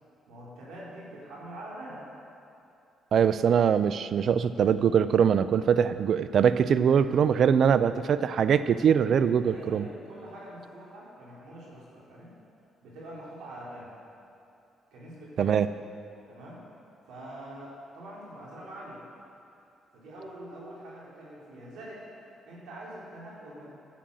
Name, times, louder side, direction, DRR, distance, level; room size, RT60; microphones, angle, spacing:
voice 1, 0.3-2.1 9.4-12.3 12.8-13.9 14.9-15.6 16.3-16.6 17.0-19.0 19.9-22.0 22.5-23.7, right 1 dB, 85° right, -6 dB, 3.1 m, -44 dB
voice 2, 3.1-9.8 15.4-15.7, right 7 dB, 60° right, 13 dB, 0.4 m, -22 dB
10.5 x 7.6 x 7.8 m, 2.6 s
cardioid pair, 90°, 0 cm